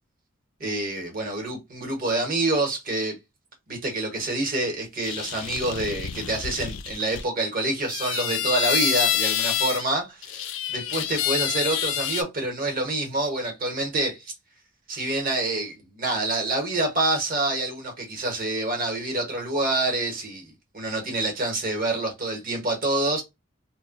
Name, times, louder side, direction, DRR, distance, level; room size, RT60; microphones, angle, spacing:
voice 1, 0.6-3.2 3.7-14.3 14.9-23.2, right 2 dB, 40° right, 0.9 m, -27 dB
sound 1, 5.0-7.2 7.9-9.9 10.2-12.2, left 11 dB, 60° left, 0.3 m, -28 dB
2.2 x 2.1 x 3.6 m
head